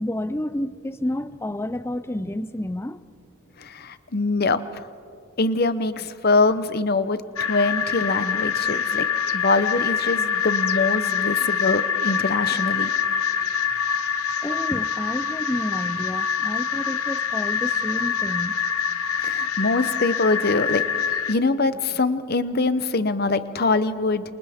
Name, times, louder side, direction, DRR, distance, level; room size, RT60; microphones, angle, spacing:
voice 1, 0.0-3.0 14.4-18.6, left 1 dB, 10° left, 0.4 m, -30 dB
voice 2, 3.6-4.9 5.4-9.1 9.3-12.9 19.2-20.8 21.3-24.3, left 3 dB, 45° left, 0.7 m, -23 dB
sound 1, 7.4-21.3, left 7 dB, 90° left, 0.8 m, -25 dB
28.0 x 27.5 x 3.6 m
head